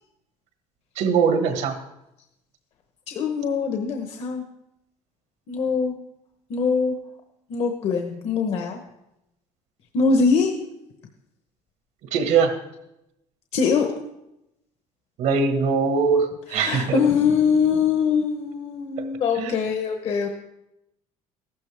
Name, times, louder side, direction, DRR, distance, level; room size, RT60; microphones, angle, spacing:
voice 1, 1.0-1.7 12.1-12.5 15.2-17.0 19.3-19.6, right 5 dB, 80° right, 6 dB, 1.5 m, -21 dB
voice 2, 3.1-4.4 5.5-5.9 6.5-7.0 7.5-8.8 9.9-10.6 13.5-14.0 16.5-20.3, left 5 dB, 55° left, 4 dB, 1.0 m, -22 dB
14.5 x 12.0 x 3.4 m, 0.87 s
cardioid pair, 140°, 12 cm